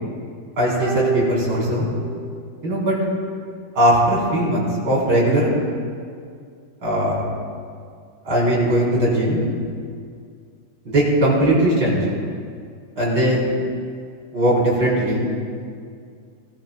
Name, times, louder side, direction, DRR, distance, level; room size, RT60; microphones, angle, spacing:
voice 1, 0.6-1.9 2.6-3.0 3.7-5.5 6.8-7.2 8.2-9.4 10.8-12.0 13.0-13.4 14.3-15.3, right 1 dB, 80° right, -6 dB, 4.4 m, -19 dB
sound 1, 0.8-2.4 2.7-2.8, right 4 dB, 5° right, 2.3 m, -27 dB
20.5 x 15.0 x 2.2 m, 2.2 s
omnidirectional pair, 2.0 m